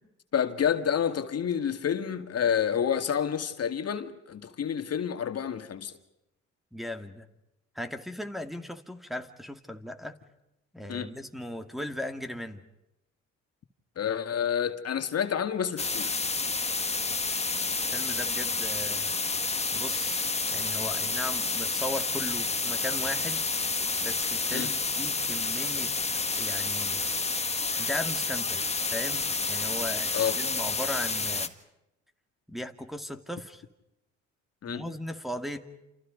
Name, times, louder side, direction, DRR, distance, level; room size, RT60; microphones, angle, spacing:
voice 1, 0.3-5.9 10.9-11.1 14.0-16.2 24.5-24.7 30.1-30.4 34.6-34.9, left 8 dB, 55° left, 2.3 m, -29 dB
voice 2, 6.7-7.2 7.8-10.2 10.7-12.6 17.9-19.1 19.7-20.3 20.5-25.9 26.4-27.0 27.8-28.6 28.9-31.5 32.5-33.6 34.7-35.6, left 1 dB, ahead, 2.3 m, -37 dB
sound 1, 15.8-31.5, left 4 dB, 20° left, 1.9 m, -29 dB
29.5 x 28.5 x 5.3 m
cardioid pair, 90°, 30 cm